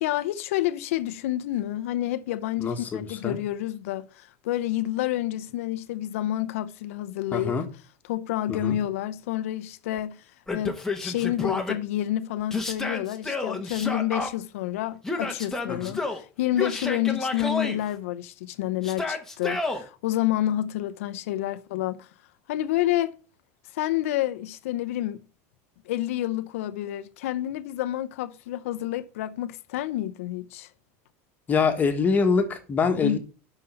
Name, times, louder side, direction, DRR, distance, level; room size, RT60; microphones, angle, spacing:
voice 1, 0.0-7.6 8.1-10.2 10.5-22.1 22.5-23.2 23.7-25.2 25.9-30.7 33.0-33.2, left 13 dB, 90° left, 0.6 m, -29 dB
voice 2, 2.6-3.4 7.3-7.6 8.5-8.8 15.7-16.0 31.5-33.2, left 5 dB, 25° left, 1.5 m, -25 dB
Yell, 10.5-11.8 12.5-14.3 15.0-16.2 16.5-17.8 18.8-19.8, left 3 dB, 5° left, 1.1 m, -30 dB
5.6 x 5.4 x 6.6 m
supercardioid pair, 135°, 7 cm